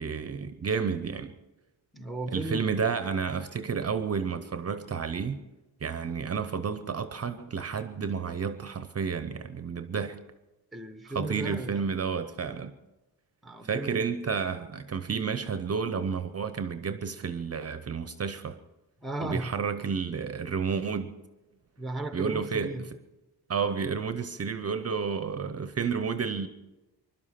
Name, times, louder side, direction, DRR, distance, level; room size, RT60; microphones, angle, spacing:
voice 1, 0.0-1.3 2.3-5.4 5.8-10.2 11.1-12.7 13.6-18.6 19.2-21.2 22.1-22.9 23.5-26.5, right 6 dB, 35° right, 0.8 m, -31 dB
voice 2, 1.9-2.6 10.7-11.9 13.4-14.1 19.0-19.5 21.8-22.8, right 2 dB, ahead, 1.0 m, -35 dB
21.0 x 12.0 x 5.8 m
wide cardioid pair, 130°, 40 cm